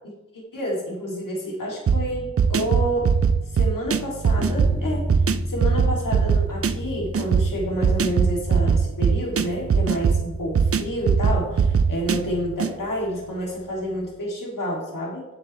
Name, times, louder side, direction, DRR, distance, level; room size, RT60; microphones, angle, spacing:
voice 1, 0.0-3.1 3.5-5.1 5.5-15.3, equal, 70° left, -3 dB, 2.7 m, -29 dB
sound 1, 1.9-12.7, right 6 dB, 45° right, 0.5 m, -22 dB
sound 2, 4.4-14.1, left 1 dB, 5° left, 2.1 m, -34 dB
10.5 x 7.8 x 3.2 m, 1.0 s
wide cardioid pair, 65°, 34 cm